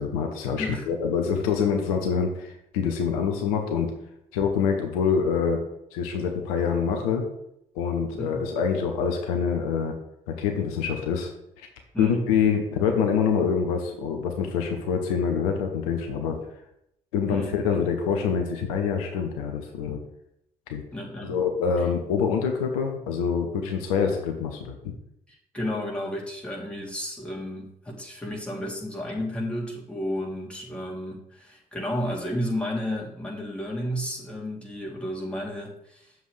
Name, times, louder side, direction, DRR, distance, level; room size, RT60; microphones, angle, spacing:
voice 1, 0.0-3.9 4.3-5.6 5.9-7.2 7.7-9.9 10.3-11.3 11.6-11.7 12.0-16.4 17.1-20.0 20.7-20.8 21.2-24.9, left 6 dB, 75° left, 4 dB, 1.0 m, -25 dB
voice 2, 8.2-8.5 11.9-12.3 17.3-17.5 20.9-21.4 25.5-36.1, left 1 dB, 5° left, -4 dB, 3.2 m, -32 dB
9.4 x 7.1 x 3.3 m, 0.78 s
figure-of-eight pair, 45°, 18 cm